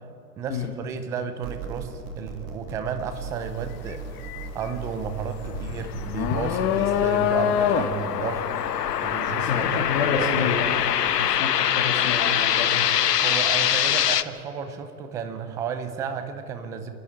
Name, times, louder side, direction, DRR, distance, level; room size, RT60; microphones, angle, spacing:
voice 1, 0.4-8.4 9.0-9.7 10.0-10.5 13.2-16.9, right 6 dB, 5° right, 9 dB, 0.4 m, -32 dB
sound 1, 1.4-7.1, right 5 dB, 30° right, 2.2 m, -38 dB
sound 2, 3.1-3.4 3.7-10.8, left 9 dB, 25° left, 0.9 m, -26 dB
sound 3, 5.8-14.2, left 10 dB, 80° left, 1.0 m, -24 dB
voice 2, 9.4-12.8, left 6 dB, 45° left, -3 dB, 2.9 m, -29 dB
27.5 x 11.0 x 8.7 m, 2.9 s
hypercardioid pair, 135°, 48 cm